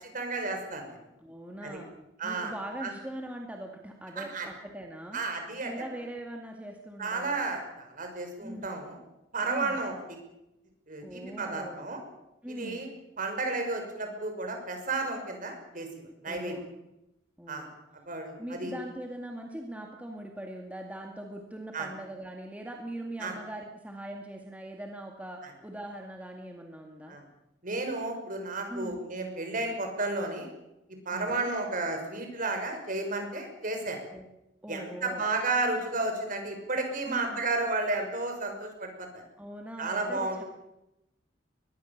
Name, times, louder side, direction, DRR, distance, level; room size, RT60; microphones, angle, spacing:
voice 1, 0.1-1.0 1.6-1.8 2.2-2.5 2.8-2.9 4.2-4.5 5.1-5.7 7.0-9.0 9.3-9.9 10.9-12.0 12.5-12.9 13.2-16.5 17.5-17.7 18.1-18.7 21.7-21.9 23.2-23.3 25.4-25.5 27.1-27.2 27.6-30.5 31.1-34.0 34.7-39.2 39.8-40.5, right 3 dB, 45° right, 5 dB, 6.0 m, -32 dB
voice 2, 1.2-1.9 2.2-5.2 5.6-7.4 8.4-8.7 9.5-9.8 11.0-11.8 12.4-12.8 16.2-16.7 17.4-17.7 18.4-27.2 28.7-29.0 31.1-31.5 34.1-34.3 34.6-35.3 37.1-37.4 39.4-40.4, right 1 dB, 10° right, 1 dB, 2.1 m, -41 dB
23.5 x 21.0 x 7.3 m, 0.90 s
head